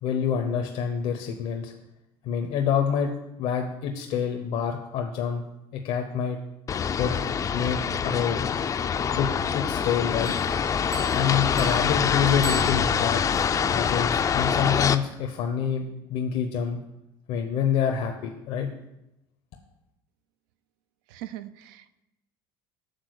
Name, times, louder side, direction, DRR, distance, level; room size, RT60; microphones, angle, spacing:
voice 1, 0.0-1.7 2.2-3.1 3.4-5.4 5.7-6.4 7.0-7.3 7.5-8.4 9.1-10.3 11.1-16.8 17.3-18.7, left 7 dB, 65° left, 3 dB, 0.7 m, -27 dB
sound 1, 6.7-15.0, left 7 dB, 30° left, 0.4 m, -25 dB
Bell, 10.2-13.3, right 3 dB, 60° right, 2.4 m, -41 dB
voice 2, 21.1-22.0, right 13 dB, 85° right, 13 dB, 0.4 m, -41 dB
6.7 x 3.7 x 6.3 m, 0.88 s
supercardioid pair, 95°, 11 cm